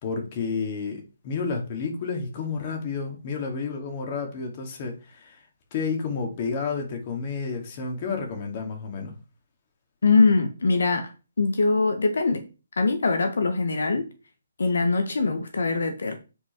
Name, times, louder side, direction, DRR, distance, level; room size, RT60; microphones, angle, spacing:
voice 1, 0.0-5.4 5.7-9.1, left 5 dB, 35° left, 2.5 m, -31 dB
voice 2, 10.0-11.1 11.4-12.4 12.8-14.1 14.6-16.2, left 3 dB, 75° left, 1.5 m, -22 dB
8.6 x 5.0 x 4.6 m
hypercardioid pair, 155°, 0 cm